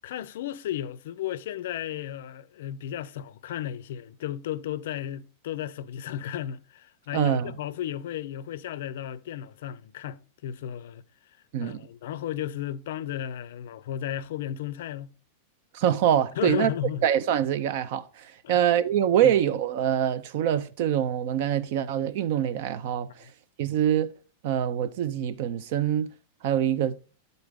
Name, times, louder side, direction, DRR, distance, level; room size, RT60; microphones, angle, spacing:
voice 1, 0.0-11.0 11.6-15.1 16.3-17.1 18.4-18.7 19.2-19.3 23.2-23.3, left 11 dB, 60° left, 0.4 m, -34 dB
voice 2, 7.1-7.5 11.5-11.8 15.7-16.7 17.0-18.0 18.5-23.1 23.6-24.1 24.4-26.1 26.4-27.0, right 10 dB, 45° right, 0.4 m, -24 dB
10.5 x 4.0 x 3.5 m
supercardioid pair, 180°, 0 cm